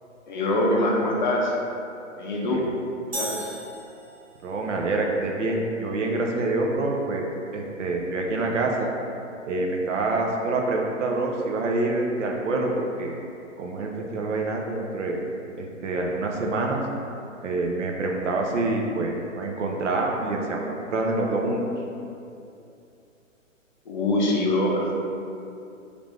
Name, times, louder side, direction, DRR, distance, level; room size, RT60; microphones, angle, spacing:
voice 1, 0.3-1.5 2.2-2.6 3.1-3.5 23.9-24.9, left 1 dB, 40° left, -3 dB, 0.5 m, -24 dB
sound 1, 3.1-4.5, right 1 dB, 50° right, 1.4 m, -35 dB
voice 2, 4.4-7.3 7.5-8.9 9.5-13.2 13.6-15.2 15.6-16.8 17.4-21.6, right 2 dB, 65° right, 0 dB, 0.6 m, -26 dB
3.3 x 2.5 x 3.3 m, 2.6 s
hypercardioid pair, 135°, 39 cm